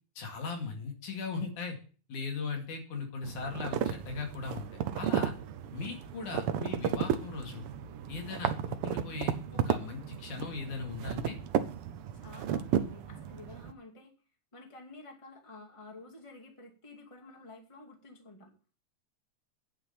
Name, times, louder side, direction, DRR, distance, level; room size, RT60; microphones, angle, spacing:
voice 1, 0.2-1.8 2.1-5.3 5.7-7.6 8.1-11.4, left 4 dB, 85° left, 2 dB, 3.7 m, -38 dB
sound 1, 3.2-13.7, right 9 dB, 75° right, 1.3 m, -34 dB
voice 2, 12.2-14.1 14.5-18.5, left 2 dB, 10° left, 2 dB, 2.0 m, -51 dB
9.5 x 6.1 x 8.4 m, 0.38 s
omnidirectional pair, 3.4 m